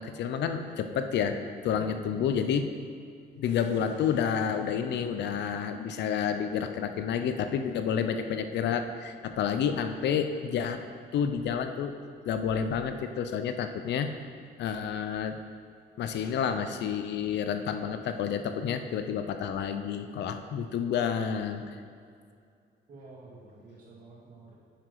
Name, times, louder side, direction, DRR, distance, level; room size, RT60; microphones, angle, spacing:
voice 1, 0.0-1.4 1.6-2.6 3.4-10.8 11.1-12.0 12.2-14.1 14.6-15.4 16.0-21.7, left 7 dB, 75° left, 8 dB, 0.7 m, -29 dB
voice 2, 1.7-2.4 22.9-24.5, right 2 dB, 50° right, -5 dB, 2.2 m, -49 dB
9.7 x 5.9 x 4.8 m, 2.3 s
cardioid pair, 130°, 18 cm